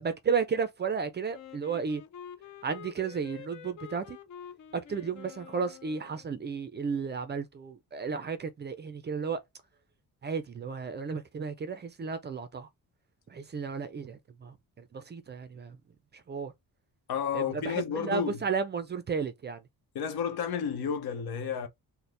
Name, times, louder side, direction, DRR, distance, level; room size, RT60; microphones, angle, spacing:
voice 1, 0.0-2.0 2.6-4.2 4.7-9.4 10.2-12.7 13.3-15.8 16.1-16.5 17.3-19.6, right 5 dB, 30° right, 0.4 m, -33 dB
Wind instrument woodwind instrument, 1.3-6.4, left 9 dB, 50° left, 0.5 m, -48 dB
voice 2, 17.1-18.4 19.9-21.7, left 7 dB, 80° left, 0.8 m, -31 dB
4.2 x 2.1 x 3.1 m
wide cardioid pair, 170°, 37 cm